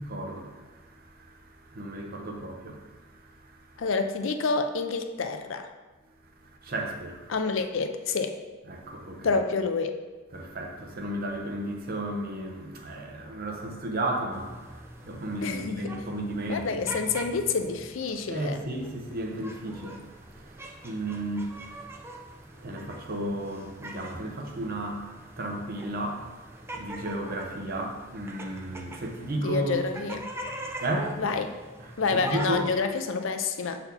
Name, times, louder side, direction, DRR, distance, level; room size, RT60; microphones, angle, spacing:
voice 1, 0.0-3.8 6.4-7.3 8.7-9.4 10.3-17.1 18.3-29.8 30.8-31.2 31.8-32.7, right 1 dB, 45° right, 0.9 m, -34 dB
voice 2, 3.8-5.7 7.3-8.4 9.2-10.0 15.4-15.9 16.5-18.6 29.4-30.3 31.2-31.5 32.0-33.8, left 4 dB, 65° left, 0.5 m, -28 dB
sound 1, 14.3-32.8, right 1 dB, 10° right, 0.5 m, -43 dB
6.8 x 4.3 x 4.1 m
head